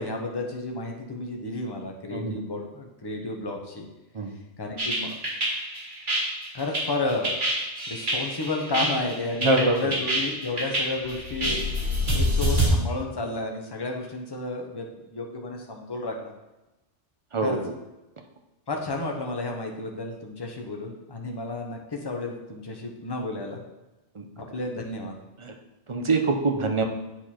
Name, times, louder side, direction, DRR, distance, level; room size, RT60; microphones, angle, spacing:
voice 1, 0.0-3.8 4.6-5.2 6.5-7.3 7.9-11.6 12.1-16.3 17.4-17.6 18.7-23.6 24.4-25.1, left 2 dB, 20° left, 1 dB, 0.9 m, -32 dB
sound 1, 4.8-12.7, equal, 85° right, 2.8 m, -26 dB
voice 2, 9.4-10.0 17.3-17.7 24.2-24.3 25.4-25.5 25.9-26.8, right 3 dB, 35° right, 4 dB, 0.6 m, -24 dB
8.6 x 4.6 x 4.4 m, 1.0 s
omnidirectional pair, 1.2 m